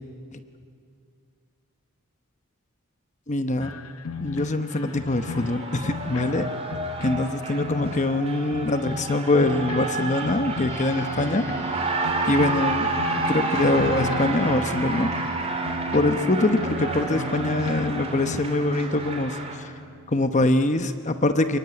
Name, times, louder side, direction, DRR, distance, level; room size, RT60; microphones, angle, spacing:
voice 1, 3.3-3.7 4.2-6.4 7.0-11.5 12.3-12.9 13.3-15.1 15.9-19.7 20.1-21.6, left 2 dB, 35° left, 8 dB, 1.0 m, -23 dB
sound 1, 3.6-8.2 8.5-11.7 12.0-14.4 14.7-18.4, left 5 dB, 85° left, 0.9 m, -36 dB
Cheering, 4.4-19.6, right 3 dB, 30° right, 2.7 m, -30 dB
sound 2, 10.7-20.4, right 3 dB, 15° left, 4.8 m, -36 dB
25.0 x 23.0 x 9.7 m, 2.3 s
head